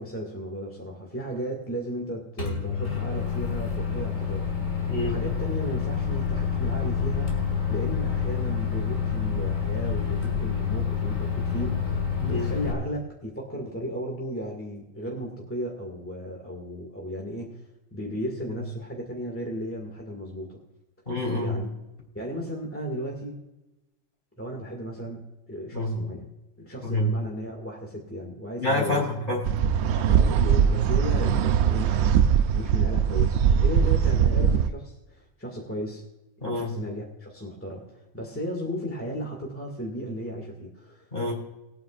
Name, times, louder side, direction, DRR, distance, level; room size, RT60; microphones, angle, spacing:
voice 1, 0.0-20.6 21.4-21.7 22.1-23.4 24.4-26.3 26.6-29.1 29.9-32.1 32.5-36.0 36.4-41.1, equal, 10° left, 0 dB, 2.0 m, -35 dB
Microwave oven, 2.4-12.7, left 6 dB, 70° left, 2.9 m, -28 dB
voice 2, 21.1-21.6 25.7-25.9 26.8-27.1 28.6-29.5 36.4-36.7 41.1-41.4, left 1 dB, 40° left, -1 dB, 3.8 m, -27 dB
sound 1, 29.4-34.7, right 7 dB, 65° right, 0.7 m, -21 dB
21.0 x 9.2 x 2.5 m, 0.97 s
omnidirectional pair, 1.4 m